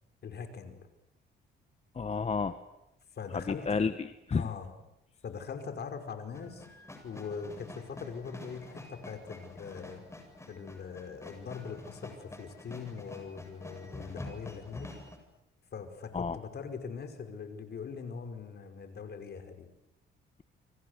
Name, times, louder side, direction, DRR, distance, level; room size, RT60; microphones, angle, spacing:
voice 1, 0.2-0.9 3.1-3.7 4.3-4.7 5.2-6.7 7.0-10.0 10.5-15.0 15.7-19.7, left 6 dB, 55° left, 7 dB, 5.4 m, -41 dB
voice 2, 1.9-2.6 3.3-4.4 16.1-16.4, left 5 dB, 30° left, 10 dB, 1.5 m, -31 dB
sound 1, 6.3-15.2, left 2 dB, 15° left, 8.0 m, -47 dB
29.5 x 24.5 x 8.2 m, 0.85 s
cardioid pair, 90°, 20 cm